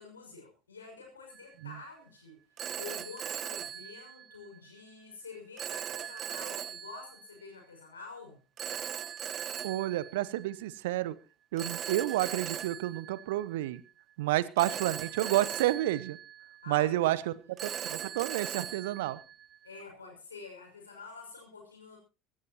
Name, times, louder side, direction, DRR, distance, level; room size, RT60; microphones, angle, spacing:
voice 1, 0.0-2.4 2.7-8.4 16.6-17.4 19.6-22.0, left 4 dB, 80° left, 2 dB, 6.0 m, -48 dB
Telephone, 1.3-1.6 2.6-4.6 5.6-7.3 8.6-10.8 11.6-13.9 14.6-16.9 17.6-19.8, right 9 dB, 40° right, 0.9 m, -39 dB
voice 2, 9.6-11.1 11.5-13.8 14.2-16.2 16.7-17.3 17.6-19.2, right 15 dB, 65° right, 18 dB, 0.8 m, -30 dB
24.0 x 12.5 x 3.0 m, 0.32 s
figure-of-eight pair, 65°, 0 cm